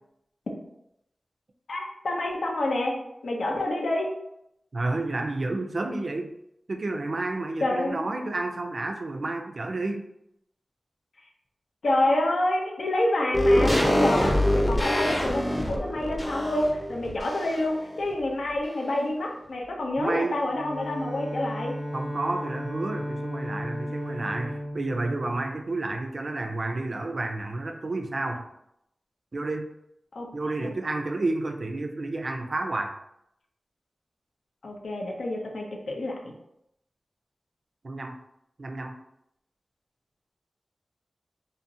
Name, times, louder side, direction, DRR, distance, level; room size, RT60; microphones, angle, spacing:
voice 1, 1.7-2.9 3.2-4.1 7.6-8.0 11.8-21.7 30.1-30.3 30.6-30.7 34.6-36.1, left 1 dB, 85° left, 0 dB, 0.4 m, -28 dB
voice 2, 4.7-6.3 6.7-10.0 20.0-20.4 21.9-28.5 29.3-29.7 30.3-32.9 37.8-38.2 38.6-38.9, right 2 dB, 60° right, 4 dB, 0.3 m, -30 dB
sound 1, 13.3-17.8 18.1-18.2, left 1 dB, 15° left, 0.5 m, -24 dB
Bowed string instrument, 20.4-26.1, equal, 60° left, 0.8 m, -35 dB
2.5 x 2.0 x 2.6 m, 0.81 s
cardioid pair, 45°, 0 cm